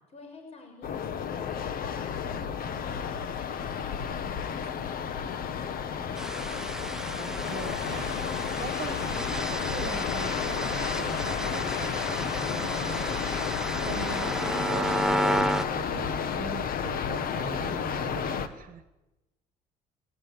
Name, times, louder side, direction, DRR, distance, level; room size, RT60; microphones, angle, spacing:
voice 1, 0.1-6.5, left 2 dB, 40° left, 4 dB, 6.0 m, -49 dB
sound 1, 0.8-18.5, left 7 dB, 60° left, 1.7 m, -32 dB
sound 2, 6.2-15.6, right 1 dB, 5° right, 1.2 m, -32 dB
voice 2, 7.2-8.1 8.6-13.2 13.8-18.8, right 9 dB, 55° right, 12 dB, 1.3 m, -41 dB
21.0 x 18.0 x 9.8 m, 1.0 s
cardioid pair, 110°, 17 cm